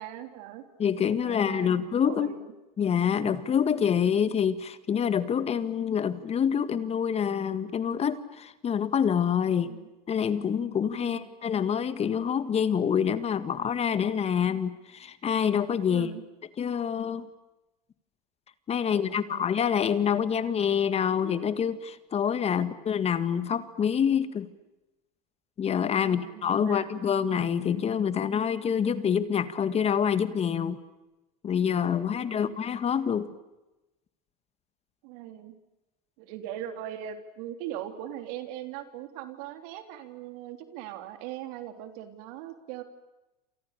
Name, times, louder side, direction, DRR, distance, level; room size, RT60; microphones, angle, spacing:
voice 1, 0.0-0.6 1.2-2.5 3.2-3.5 9.6-9.9 11.0-11.3 15.9-16.2 18.8-19.5 22.5-22.7 26.0-26.9 32.1-32.6 35.0-35.5 36.2-42.8, right 11 dB, 65° right, 8 dB, 3.5 m, -40 dB
voice 2, 0.8-2.3 2.8-9.7 10.1-16.1 16.6-17.3 18.7-24.5 25.6-30.8 31.4-33.3, left 8 dB, 30° left, 12 dB, 1.8 m, -26 dB
29.0 x 27.5 x 6.8 m, 1.0 s
hypercardioid pair, 100°, 21 cm